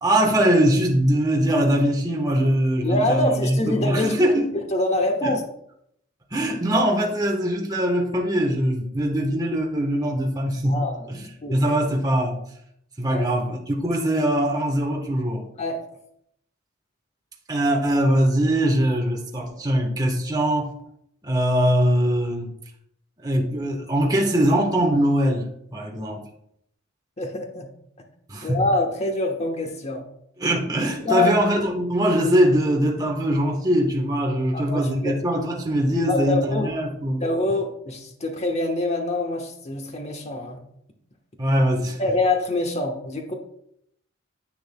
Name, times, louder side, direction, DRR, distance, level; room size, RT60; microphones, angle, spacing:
voice 1, 0.0-4.5 5.2-5.3 6.3-10.8 11.1-12.4 13.0-15.4 17.5-20.7 21.2-22.5 23.2-26.2 28.3-28.6 30.4-37.2 41.4-42.0, right 1 dB, 20° right, 0 dB, 1.1 m, -22 dB
voice 2, 2.8-4.3 4.5-5.4 10.6-11.1 11.4-11.6 13.0-13.2 15.6-15.8 27.2-27.7 28.4-30.0 31.0-31.3 34.5-35.2 36.1-36.7 37.2-40.6 42.0-43.3, left 2 dB, 30° left, 3 dB, 1.1 m, -25 dB
10.0 x 8.0 x 2.2 m, 0.73 s
head